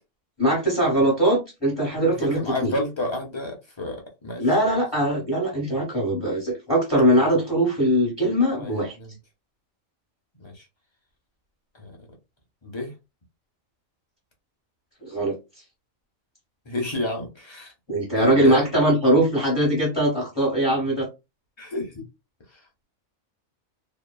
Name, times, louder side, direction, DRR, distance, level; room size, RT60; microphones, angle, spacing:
voice 1, 0.4-2.7 4.4-9.0 15.0-15.4 17.9-21.1, right 1 dB, 20° left, 1.0 m, -21 dB
voice 2, 2.2-4.5 8.6-9.1 10.4-10.6 11.8-11.9 12.6-12.9 16.7-17.7 18.2-18.7 21.6-22.0, left 2 dB, 40° left, 0.4 m, -30 dB
3.0 x 2.1 x 2.2 m
omnidirectional pair, 1.4 m